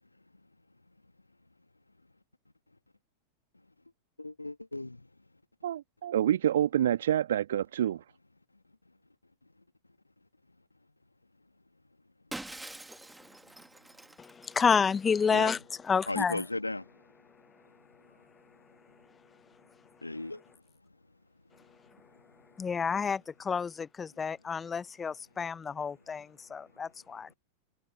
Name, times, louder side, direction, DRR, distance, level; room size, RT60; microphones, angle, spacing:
voice 1, 4.2-5.0 15.3-15.5 16.1-16.8 20.0-20.4, left 2 dB, 85° left, 2.0 m, -35 dB
voice 2, 5.6-8.0, right 11 dB, 60° right, 1.5 m, -27 dB
Shatter, 12.3-15.0, right 1 dB, 5° right, 1.9 m, -45 dB
voice 3, 14.2-16.4 22.6-27.3, left 6 dB, 20° left, 0.9 m, -30 dB
figure-of-eight pair, 90°, 0 cm